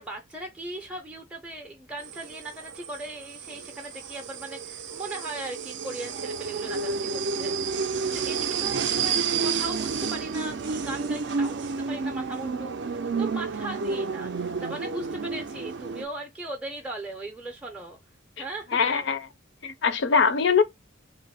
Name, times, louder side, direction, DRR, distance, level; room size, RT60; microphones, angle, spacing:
voice 1, 0.0-18.0 18.4-19.2, right 2 dB, 5° right, 0.5 m, -38 dB
sound 1, 2.0-16.1, right 5 dB, 60° right, 0.4 m, -30 dB
voice 2, 18.7-19.2 19.6-20.6, left 5 dB, 60° left, 0.4 m, -22 dB
3.0 x 2.0 x 4.1 m
head